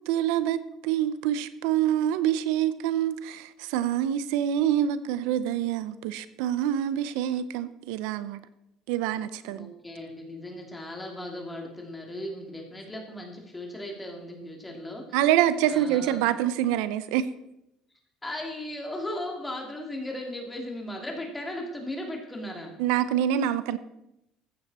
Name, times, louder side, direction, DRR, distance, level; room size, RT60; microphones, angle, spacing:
voice 1, 0.1-8.4 8.9-9.7 15.1-17.3 22.8-23.8, right 11 dB, 90° right, 14 dB, 0.7 m, -26 dB
voice 2, 9.5-15.2 15.7-16.3 18.2-22.7, left 1 dB, 10° left, 1 dB, 2.9 m, -37 dB
14.5 x 9.4 x 4.3 m, 0.85 s
cardioid pair, 130°, 0 cm